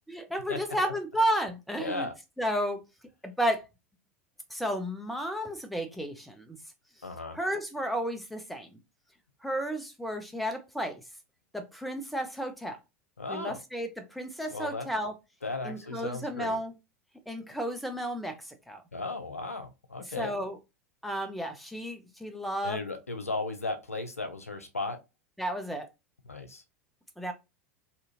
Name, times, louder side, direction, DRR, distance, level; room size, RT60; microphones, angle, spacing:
voice 1, 0.1-2.1 2.4-2.8 3.2-3.7 4.5-6.6 7.3-8.8 9.4-11.0 11.5-12.8 13.3-15.1 15.6-16.7 17.3-18.8 20.1-20.6 21.0-22.8 25.4-25.9 27.2-27.3, equal, ahead, 0.6 m, -32 dB
voice 2, 1.8-2.1 7.0-7.4 13.2-13.6 14.5-14.9 15.4-16.6 18.9-20.3 22.6-25.0 26.3-26.6, left 3 dB, 85° left, 0.5 m, -35 dB
2.7 x 2.4 x 2.8 m
figure-of-eight pair, 85°, 8 cm